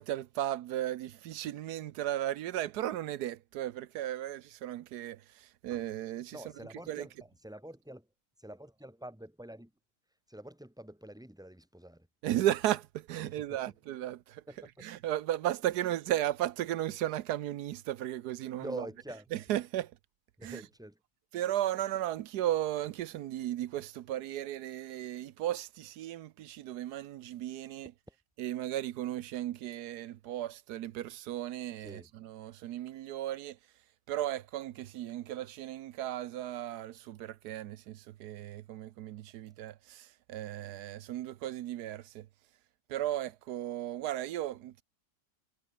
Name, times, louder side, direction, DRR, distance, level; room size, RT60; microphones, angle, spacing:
voice 1, 0.0-6.4 6.9-7.1 12.2-14.4 14.8-18.8 19.3-19.9 20.4-20.6 21.3-27.9 28.4-33.6 34.1-42.3 42.9-44.8, right 13 dB, 70° right, 1.1 m, -35 dB
voice 2, 6.3-8.1 8.4-9.7 10.3-12.1 13.2-13.8 14.5-14.7 18.6-19.3 20.4-21.0 28.1-28.2 31.8-32.1, right 1 dB, ahead, 3.0 m, -46 dB
omnidirectional pair, 1.9 m